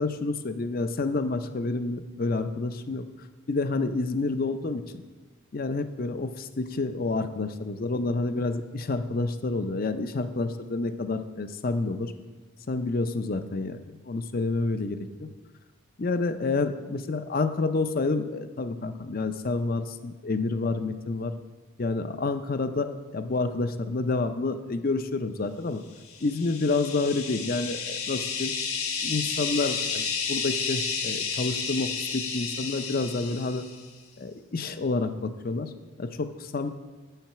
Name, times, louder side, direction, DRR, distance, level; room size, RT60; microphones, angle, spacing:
voice 1, 0.0-3.0 3.5-5.0 5.5-12.1 12.7-15.3 16.0-21.3 21.8-25.8 26.2-28.5 29.0-33.6 34.2-35.7 36.0-36.7, left 3 dB, 40° left, 10 dB, 0.5 m, -29 dB
sound 1, 26.0-33.8, left 5 dB, 80° left, 1.4 m, -31 dB
9.1 x 8.0 x 5.7 m, 1.3 s
head